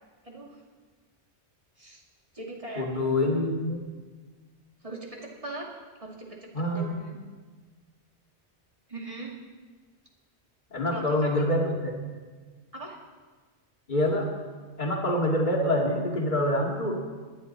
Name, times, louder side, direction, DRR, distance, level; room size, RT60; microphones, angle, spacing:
voice 1, 0.2-0.6 1.8-2.0 2.3-3.1 4.8-5.7 6.0-7.2 8.9-9.3 10.9-11.3 12.7-13.0, right 2 dB, 30° right, -2 dB, 2.2 m, -40 dB
voice 2, 2.8-3.9 6.5-6.9 10.7-11.9 13.9-14.3 14.8-17.0, left 1 dB, 45° left, -1 dB, 2.2 m, -26 dB
20.0 x 11.0 x 4.1 m, 1.4 s
omnidirectional pair, 1.1 m